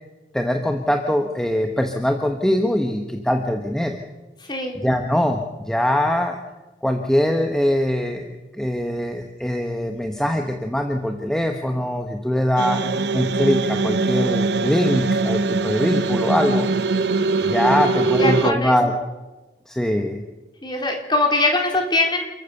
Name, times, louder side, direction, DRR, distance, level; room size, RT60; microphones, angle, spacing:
voice 1, 0.3-4.0 4.8-6.4 6.8-12.8 13.1-16.7 17.5-18.9 19.7-20.2, equal, 5° left, 3 dB, 1.1 m, -22 dB
voice 2, 4.5-4.8 18.2-18.8 20.6-22.2, left 2 dB, 25° left, 2 dB, 3.5 m, -21 dB
sound 1, 12.6-18.5, right 3 dB, 70° right, 0.8 m, -22 dB
28.5 x 14.5 x 6.8 m, 1.1 s
head